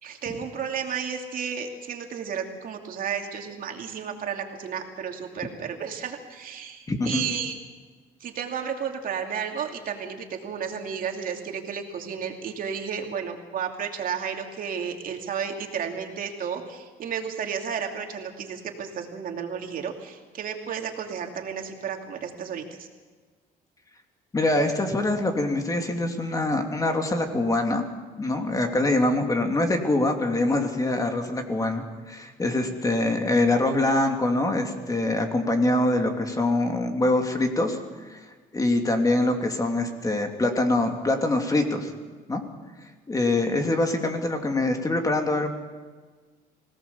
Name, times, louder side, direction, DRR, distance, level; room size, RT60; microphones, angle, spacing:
voice 1, 0.0-7.6 8.2-22.9, right 7 dB, 55° right, 3 dB, 2.8 m, -32 dB
voice 2, 6.9-7.3 24.3-27.8 28.2-37.8 38.1-38.2 38.5-41.9 42.3-42.4 43.1-45.5, left 2 dB, 20° left, 4 dB, 2.8 m, -24 dB
24.0 x 17.5 x 7.1 m, 1.4 s
cardioid pair, 110°, 17 cm